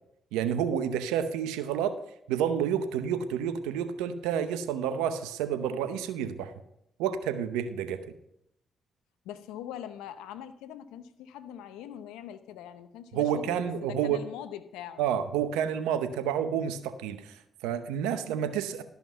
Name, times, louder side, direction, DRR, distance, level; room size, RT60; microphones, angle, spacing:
voice 1, 0.3-2.0 2.3-6.6 7.0-8.0 13.1-14.2 15.0-18.8, right 8 dB, 90° right, 0.7 m, -29 dB
voice 2, 9.2-15.0, left 10 dB, 90° left, 0.7 m, -42 dB
12.5 x 5.9 x 5.5 m
supercardioid pair, 50°, 0 cm